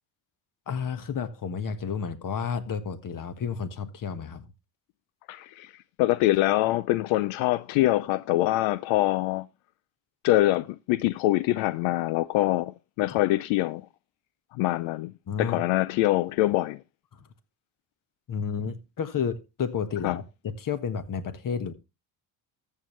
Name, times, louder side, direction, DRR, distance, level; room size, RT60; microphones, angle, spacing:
voice 1, 0.7-4.5 15.3-15.6 17.1-17.3 18.3-21.7, left 6 dB, 45° left, 1.5 m, -31 dB
voice 2, 5.3-5.7 6.0-9.5 10.2-13.9 14.5-15.1 15.4-16.8 20.0-20.2, left 17 dB, 85° left, 0.6 m, -24 dB
14.0 x 7.5 x 3.1 m
supercardioid pair, 85°, 47 cm